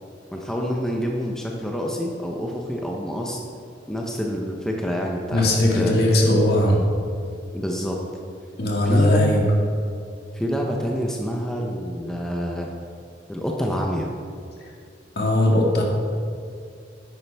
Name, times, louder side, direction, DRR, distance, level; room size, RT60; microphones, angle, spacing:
voice 1, 0.3-3.4 3.9-5.5 5.8-5.9 7.5-8.0 8.8-9.3 10.3-12.7 13.3-14.1, equal, 5° left, -1 dB, 0.7 m, -27 dB
voice 2, 5.3-6.8 8.6-9.4 15.2-15.8, left 1 dB, 60° left, -1 dB, 1.8 m, -19 dB
10.0 x 9.3 x 3.4 m, 2.3 s
head